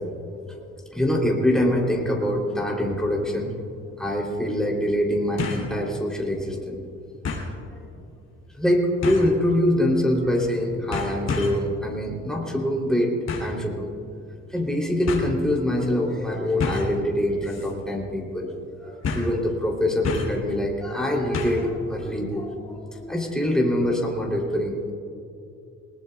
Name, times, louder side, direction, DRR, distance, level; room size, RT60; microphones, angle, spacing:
voice 1, 0.9-3.5 4.0-6.8 7.7-7.8 8.5-13.1 13.4-13.9 14.5-18.5 18.8-24.9, left 1 dB, ahead, -2 dB, 3.2 m, -24 dB
sound 1, 3.5-3.6 5.4-5.7 6.2-6.3 7.2-7.5 9.0-9.4 10.3-10.6 10.9-11.7 13.3-13.6 14.6-14.7 15.1-15.3 16.6-17.0 17.4-17.7 18.0-18.1 19.0-19.4 20.0-20.4 21.3-21.7 22.0-22.1, left 4 dB, 60° left, 3.0 m, -29 dB
20.0 x 19.5 x 2.4 m, 2.6 s
cardioid pair, 90°, 30 cm